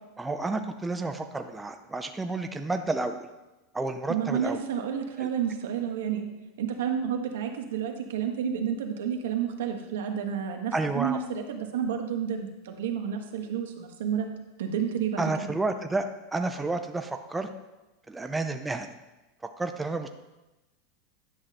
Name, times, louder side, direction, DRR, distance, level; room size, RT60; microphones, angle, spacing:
voice 1, 0.2-3.3 3.7-4.6 5.2-5.3 10.7-11.2 15.2-16.0 16.3-17.5 18.1-18.9 19.6-20.1, right 3 dB, 10° right, 6 dB, 0.5 m, -30 dB
voice 2, 4.1-6.3 6.6-14.3 14.6-15.5, right 8 dB, 90° right, 3 dB, 1.3 m, -30 dB
10.5 x 6.2 x 4.2 m, 1.1 s
supercardioid pair, 135°, 0 cm